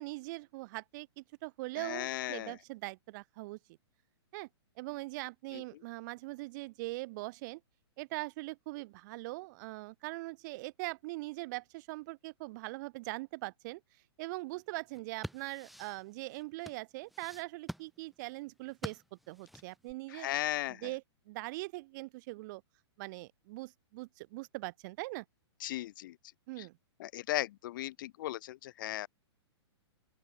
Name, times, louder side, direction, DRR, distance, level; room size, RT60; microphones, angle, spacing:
voice 1, 0.0-3.6 4.3-4.5 4.8-7.6 8.0-13.8 14.2-20.3 20.7-22.6 23.0-25.2 26.5-26.8, right 22 dB, 45° right, 7.6 m, -41 dB
voice 2, 1.8-2.5 20.1-20.8 25.6-26.1 26.6-26.7 27.0-29.1, left 14 dB, 45° left, 0.4 m, -36 dB
sound 1, 14.8-19.9, equal, ahead, 2.5 m, -47 dB
open air
hypercardioid pair, 140°, 14 cm